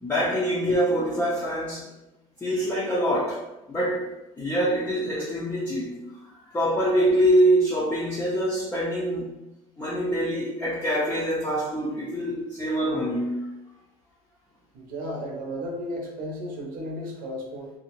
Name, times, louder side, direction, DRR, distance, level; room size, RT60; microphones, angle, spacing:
voice 1, 0.0-1.9 2.4-3.4 3.7-4.1 4.4-6.0 6.5-9.3 9.8-13.4, equal, 15° left, -7 dB, 0.6 m, -24 dB
voice 2, 14.7-17.7, equal, 60° right, -1 dB, 0.7 m, -34 dB
2.6 x 2.0 x 3.0 m, 0.96 s
cardioid pair, 120°, 16 cm